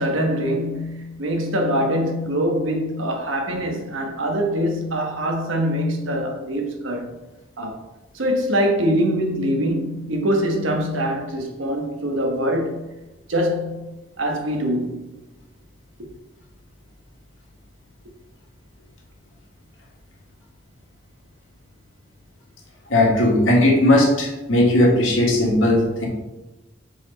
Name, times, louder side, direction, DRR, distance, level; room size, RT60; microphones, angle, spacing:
voice 1, 0.0-7.2 7.6-7.8 8.1-12.8 13.3-13.9 14.2-15.1, equal, 80° right, 1.2 m, -23 dB
voice 2, 22.9-26.1, left 1 dB, 80° left, 1.8 m, -17 dB
7.1 x 4.2 x 3.9 m
head